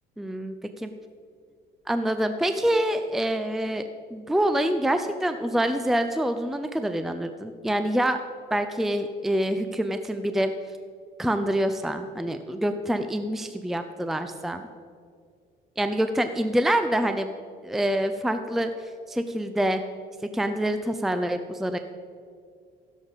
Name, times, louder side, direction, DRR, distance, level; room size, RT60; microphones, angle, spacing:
voice 1, 0.2-0.9 1.9-8.2 8.5-10.5 11.2-14.6 15.8-17.3 17.6-19.8 20.2-21.8, right 1 dB, ahead, 8 dB, 0.5 m, -26 dB
16.0 x 7.1 x 4.1 m, 2.2 s
cardioid pair, 110°, 17 cm